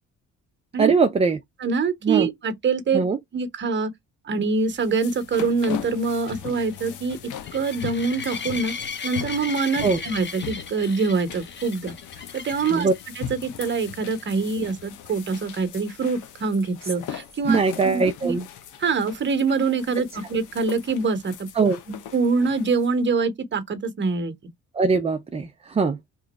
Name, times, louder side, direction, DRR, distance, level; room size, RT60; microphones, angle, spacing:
voice 1, 0.8-1.4 2.0-2.3 2.9-3.2 9.8-10.0 12.7-12.9 17.5-18.5 21.6-21.8 24.7-26.0, right 4 dB, 20° right, 0.4 m, -21 dB
voice 2, 1.6-3.0 3.3-3.9 4.3-7.2 7.5-8.7 9.0-11.9 12.3-12.9 13.2-17.6 17.8-18.4 18.8-21.3 21.9-24.3, right 4 dB, 40° right, 0.9 m, -24 dB
sound 1, 4.5-22.9, left 10 dB, 80° left, 0.7 m, -39 dB
sound 2, 5.1-13.0 13.6-13.9 14.2-14.3 14.7-14.8 18.4-18.5, left 5 dB, 40° left, 0.9 m, -36 dB
3.0 x 2.4 x 4.0 m
cardioid pair, 90°, 30 cm